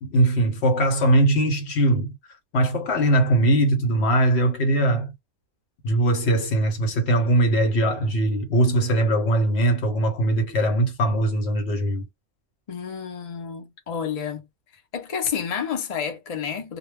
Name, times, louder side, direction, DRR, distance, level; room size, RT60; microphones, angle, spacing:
voice 1, 0.0-2.1 2.5-5.1 5.8-12.1, right 1 dB, 60° left, 1.0 m, -21 dB
voice 2, 12.7-14.4 14.9-16.8, left 7 dB, 40° left, 0.6 m, -30 dB
2.2 x 2.2 x 3.2 m
omnidirectional pair, 1.3 m